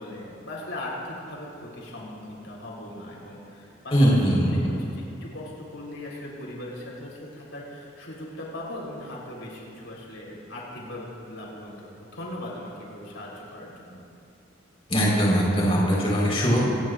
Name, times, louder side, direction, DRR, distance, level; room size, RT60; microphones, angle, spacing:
voice 1, 0.0-14.0, left 1 dB, 85° left, -4 dB, 4.0 m, -39 dB
voice 2, 3.9-4.5 14.9-16.6, equal, 30° left, -5 dB, 4.5 m, -21 dB
26.5 x 17.5 x 2.6 m, 2.6 s
head